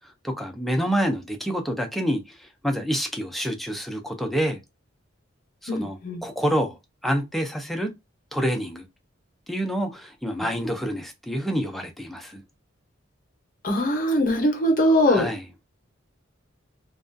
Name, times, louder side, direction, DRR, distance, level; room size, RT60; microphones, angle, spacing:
voice 1, 0.2-2.2 2.6-4.6 5.6-6.8 7.0-7.9 8.3-8.8 9.5-12.4 15.1-15.4, equal, ahead, 0.4 m, -27 dB
voice 2, 5.7-6.2 13.6-15.3, left 1 dB, 45° left, 0.7 m, -21 dB
2.3 x 2.2 x 2.5 m
head